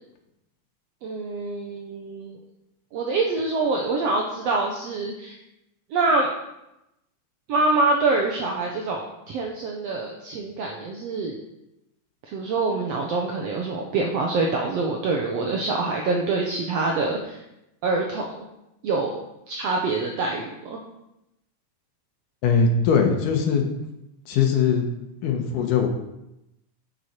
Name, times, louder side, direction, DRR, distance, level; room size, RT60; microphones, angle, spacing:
voice 1, 1.0-2.4 2.9-5.4 5.9-6.3 7.5-11.4 12.3-17.4 17.8-18.3 18.8-20.8, right 3 dB, 70° right, 0 dB, 1.7 m, -25 dB
voice 2, 22.4-23.7 24.3-24.9 25.2-25.9, left 6 dB, 85° left, 3 dB, 2.7 m, -21 dB
9.4 x 6.4 x 4.4 m, 0.89 s
omnidirectional pair, 3.6 m